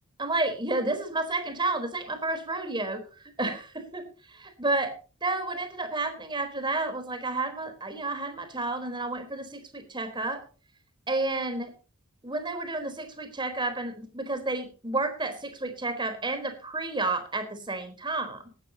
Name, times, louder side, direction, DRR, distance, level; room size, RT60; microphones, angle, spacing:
voice 1, 0.2-3.0 3.4-4.9 5.2-10.4 11.1-11.7 12.2-18.4, right 2 dB, 20° right, 7 dB, 4.1 m, -31 dB
19.0 x 12.5 x 2.9 m, 0.35 s
head